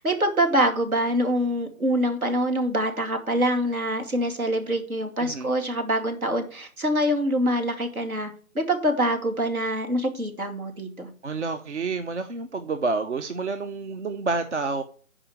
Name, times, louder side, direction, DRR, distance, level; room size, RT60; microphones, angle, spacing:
voice 1, 0.0-11.1, equal, 80° right, 5 dB, 2.6 m, -25 dB
voice 2, 5.2-5.5 11.2-14.8, right 4 dB, 55° right, 9 dB, 0.8 m, -29 dB
10.0 x 5.0 x 7.8 m, 0.43 s
figure-of-eight pair, 155°, 42 cm